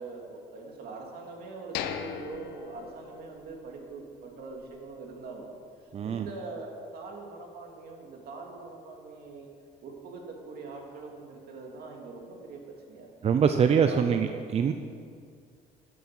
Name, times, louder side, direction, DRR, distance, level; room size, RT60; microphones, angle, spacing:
voice 1, 0.0-5.6 6.0-9.5 9.8-12.6 12.9-13.1 13.8-14.3, right 3 dB, 65° right, 0 dB, 2.7 m, -42 dB
sound 1, 1.7-3.7 4.0-4.1 4.6-4.8, left 9 dB, 90° left, 0.8 m, -38 dB
voice 2, 5.9-6.3 13.2-14.3 14.5-14.7, right 7 dB, 40° right, 8 dB, 0.6 m, -23 dB
12.0 x 8.0 x 7.6 m, 2.2 s
cardioid pair, 110°, 17 cm